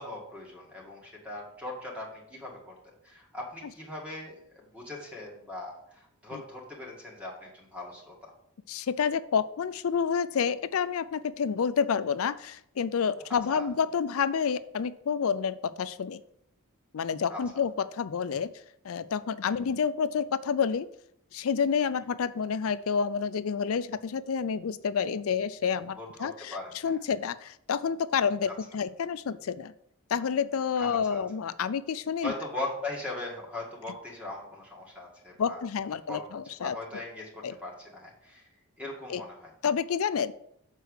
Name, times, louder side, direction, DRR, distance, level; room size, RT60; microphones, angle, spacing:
voice 1, 0.0-8.3 13.2-13.7 17.3-17.4 19.5-19.7 25.9-27.0 28.5-28.6 30.8-31.2 32.2-35.6 36.1-38.5 38.8-39.5, left 2 dB, 5° right, -3 dB, 1.9 m, -40 dB
voice 2, 8.7-16.2 16.9-18.5 18.8-20.9 21.3-26.6 26.8-29.7 30.1-32.3 35.4-36.7 37.4-37.5 39.1-39.2 39.6-40.3, left 6 dB, 70° left, 15 dB, 0.4 m, -29 dB
6.8 x 4.5 x 6.4 m, 0.72 s
head